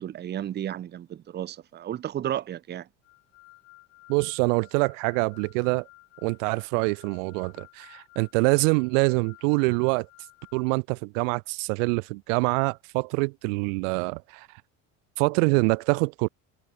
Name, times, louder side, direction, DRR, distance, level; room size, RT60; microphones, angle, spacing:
voice 1, 0.0-2.9, right 11 dB, 25° right, 0.6 m, -33 dB
sound 1, 3.0-10.8, left 29 dB, 80° left, 7.6 m, -54 dB
voice 2, 4.1-5.8 6.2-10.1 10.5-14.5 15.2-16.3, right 33 dB, 80° right, 0.6 m, -25 dB
supercardioid pair, 110°, 38 cm